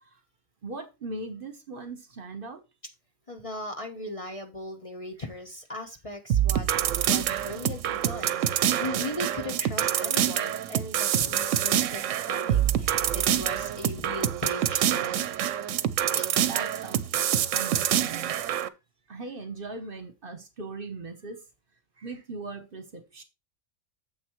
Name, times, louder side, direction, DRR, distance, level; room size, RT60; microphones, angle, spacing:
voice 1, 0.6-2.6 16.4-18.3 19.1-21.4 22.0-23.2, right 3 dB, 45° right, 1.2 m, -39 dB
voice 2, 3.3-15.3 16.1-16.4, left 1 dB, 30° left, 1.0 m, -38 dB
sound 1, 6.3-18.7, right 10 dB, 75° right, 1.0 m, -26 dB
9.2 x 7.4 x 3.1 m
omnidirectional pair, 1.3 m